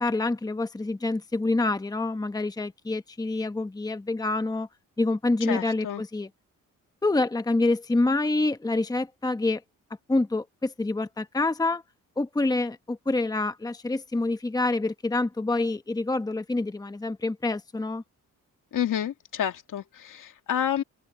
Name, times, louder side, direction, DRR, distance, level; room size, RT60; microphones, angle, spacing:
voice 1, 0.0-4.7 5.0-6.3 7.0-9.6 10.1-11.8 12.2-18.0, left 2 dB, 10° left, 1.0 m, -27 dB
voice 2, 5.4-6.0 18.7-20.8, left 10 dB, 70° left, 2.3 m, -29 dB
open air
cardioid pair, 95°, 32 cm